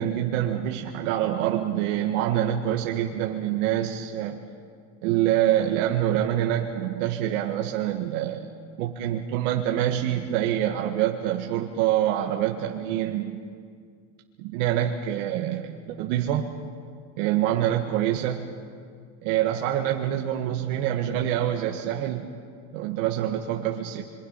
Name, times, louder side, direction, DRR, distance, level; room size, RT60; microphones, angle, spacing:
voice 1, 0.0-4.4 5.0-8.5 8.8-13.4 14.5-16.5 17.2-18.5 19.2-22.3 22.7-24.0, right 11 dB, 75° right, 1 dB, 1.8 m, -26 dB
30.0 x 23.5 x 5.7 m, 2.1 s
supercardioid pair, 130°, 39 cm